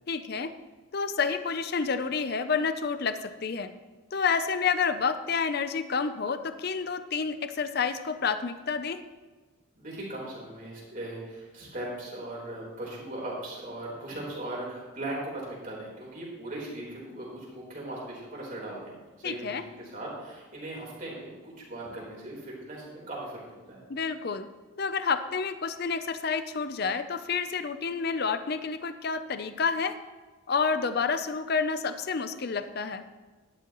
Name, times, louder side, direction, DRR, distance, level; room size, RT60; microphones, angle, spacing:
voice 1, 0.1-0.5 0.9-3.7 4.1-9.0 19.2-19.6 23.9-24.5 24.8-30.0 30.5-33.0, left 5 dB, 50° left, 11 dB, 0.5 m, -29 dB
voice 2, 9.8-23.8, right 1 dB, 40° right, -4 dB, 3.9 m, -39 dB
12.5 x 11.5 x 3.0 m, 1.3 s
head